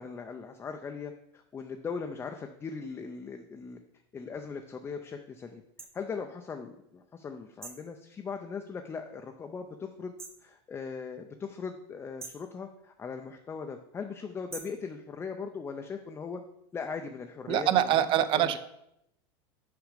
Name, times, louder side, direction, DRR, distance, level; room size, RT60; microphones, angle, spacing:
voice 1, 0.0-3.8 4.1-5.6 5.9-10.1 10.4-16.4 16.7-18.0 18.3-18.5, left 5 dB, 15° left, 4 dB, 0.4 m, -39 dB
sound 1, 5.8-5.9 7.6-7.9 10.2-10.5 12.2-12.5 14.5-14.8, right 4 dB, 20° right, 0.9 m, -44 dB
voice 2, 17.5-18.6, right 11 dB, 40° right, 13 dB, 0.5 m, -24 dB
6.3 x 4.9 x 5.0 m, 0.80 s
supercardioid pair, 135°, 14 cm